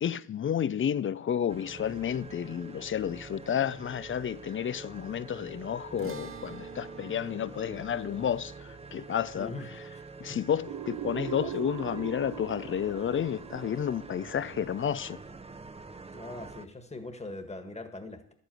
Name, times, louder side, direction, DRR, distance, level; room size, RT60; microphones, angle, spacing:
voice 1, 0.0-9.5 10.2-15.2, left 9 dB, 40° left, 0.4 m, -31 dB
sound 1, 1.5-16.7, right 4 dB, 20° right, 0.6 m, -46 dB
sound 2, 6.0-12.5, right 6 dB, 40° right, 1.1 m, -50 dB
sound 3, 10.7-15.4, right 11 dB, 80° right, 0.7 m, -41 dB
voice 2, 16.1-18.3, left 2 dB, 20° left, 1.6 m, -41 dB
11.5 x 8.3 x 7.6 m
cardioid pair, 105°, 33 cm